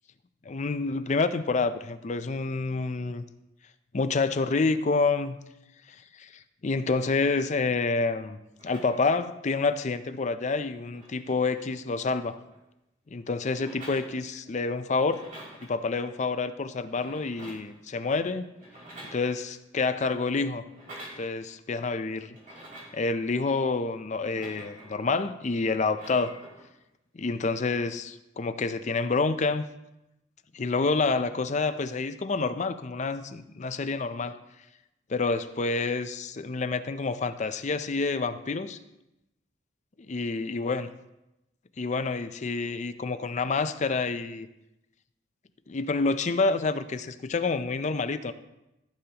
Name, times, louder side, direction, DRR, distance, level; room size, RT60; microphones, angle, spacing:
voice 1, 0.5-3.2 3.9-5.4 6.2-6.3 6.6-8.4 8.6-12.4 13.1-15.2 15.6-18.5 19.1-20.6 21.2-22.4 22.9-26.4 27.1-29.6 30.5-34.4 35.1-38.8 40.1-40.9 41.8-44.5 45.7-48.3, left 3 dB, 40° left, 11 dB, 0.5 m, -28 dB
sound 1, 8.5-9.2 10.4-10.5 10.7-12.6 13.5-14.6 14.9-15.7 16.8-17.8 18.5-19.7 20.6-21.2 22.3-23.0 24.1-25.1 25.7-26.6 27.6-27.8, right 1 dB, 45° right, 3.0 m, -48 dB
14.5 x 6.9 x 2.9 m, 0.92 s
head